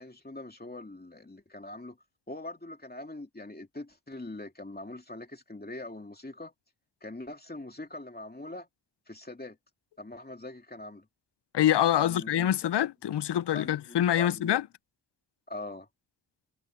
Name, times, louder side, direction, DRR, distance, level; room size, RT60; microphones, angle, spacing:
voice 1, 0.0-2.0 2.3-6.5 7.0-8.7 9.1-9.6 10.0-11.1 12.0-12.5 13.5-14.6 15.5-15.9, left 2 dB, 20° left, 2.6 m, -42 dB
voice 2, 11.5-14.6, left 11 dB, 80° left, 0.6 m, -25 dB
wide cardioid pair, 70°, 41 cm